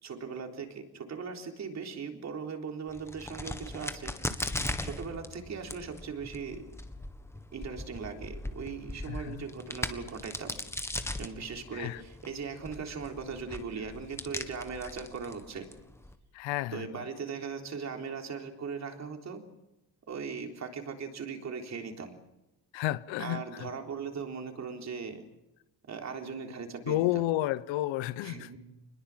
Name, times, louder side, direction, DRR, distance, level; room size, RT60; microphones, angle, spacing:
voice 1, 0.0-4.1 4.8-6.6 7.5-10.6 11.2-15.7 16.7-19.4 20.1-22.1 23.2-25.2 25.9-27.2 28.2-28.6, right 5 dB, 35° right, 3.7 m, -39 dB
Crack, 2.9-16.1, left 1 dB, 5° left, 1.6 m, -39 dB
voice 2, 9.1-9.4 11.7-12.0 16.3-16.9 22.7-23.7 26.9-28.5, left 15 dB, 80° left, 1.0 m, -31 dB
27.0 x 21.0 x 7.4 m
cardioid pair, 150°, 45 cm